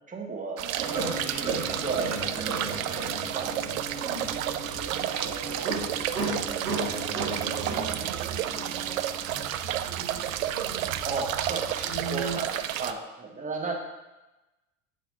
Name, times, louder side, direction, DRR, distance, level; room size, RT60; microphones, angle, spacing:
voice 1, 0.1-3.6 4.7-6.0 11.0-13.7, right 4 dB, 15° right, -1 dB, 1.5 m, -36 dB
sound 1, 0.6-12.9, right 11 dB, 65° right, 0.5 m, -31 dB
sound 2, 0.8-12.4, right 3 dB, 85° right, 1.7 m, -35 dB
voice 2, 4.0-4.4 7.1-10.2, left 3 dB, 85° left, 1 dB, 1.5 m, -46 dB
9.0 x 4.1 x 4.2 m, 1.0 s
figure-of-eight pair, 75°, 44 cm